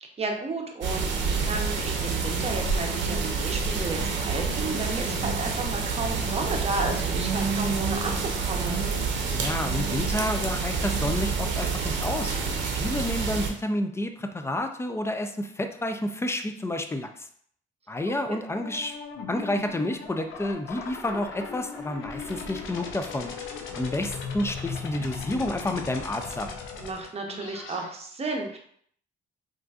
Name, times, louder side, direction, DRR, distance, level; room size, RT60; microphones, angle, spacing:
voice 1, 0.0-8.8 18.3-18.4 26.8-28.6, right 3 dB, 30° right, 2 dB, 0.7 m, -33 dB
sound 1, 0.8-13.5, right 4 dB, 65° right, 0.6 m, -28 dB
voice 2, 9.3-12.3 12.7-17.3 17.9-18.9 19.3-23.3 23.7-26.5, left 1 dB, 15° left, 6 dB, 0.3 m, -30 dB
sound 2, 18.5-27.9, left 5 dB, 80° left, 0.5 m, -38 dB
3.7 x 2.5 x 2.3 m, 0.62 s
cardioid pair, 90°, 20 cm